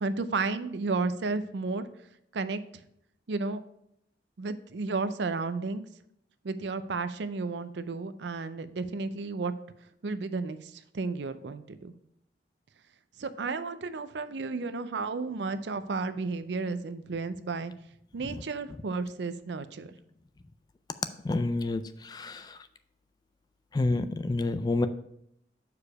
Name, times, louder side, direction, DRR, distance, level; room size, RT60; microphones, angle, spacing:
voice 1, 0.0-1.9 2.3-2.6 3.3-3.6 4.4-5.9 6.4-9.5 10.0-12.0 13.2-17.7 18.1-19.9, right 3 dB, 75° right, 12 dB, 0.5 m, -32 dB
voice 2, 21.2-22.6 23.7-24.9, left 2 dB, 20° left, 11 dB, 0.3 m, -29 dB
6.8 x 4.8 x 4.7 m, 0.74 s
head